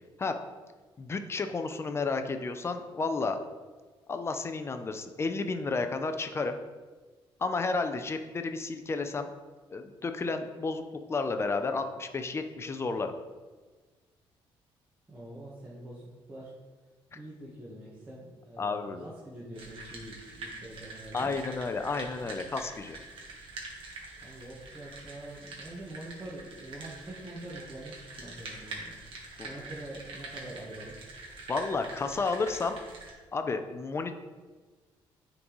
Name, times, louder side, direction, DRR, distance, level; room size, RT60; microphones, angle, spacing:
voice 1, 1.0-3.4 4.1-6.6 7.4-9.3 9.7-10.8 11.1-13.1 18.6-19.0 21.1-23.0 29.4-29.5 31.5-32.8 33.3-34.2, left 4 dB, 25° left, 7 dB, 0.4 m, -32 dB
voice 2, 15.1-16.5 17.1-21.4 24.2-29.0 29.4-31.0, right 1 dB, 15° right, -6 dB, 1.1 m, -45 dB
sound 1, 19.5-33.1, right 3 dB, 60° right, 1.4 m, -45 dB
9.5 x 3.9 x 3.0 m, 1.3 s
cardioid pair, 125°, 10 cm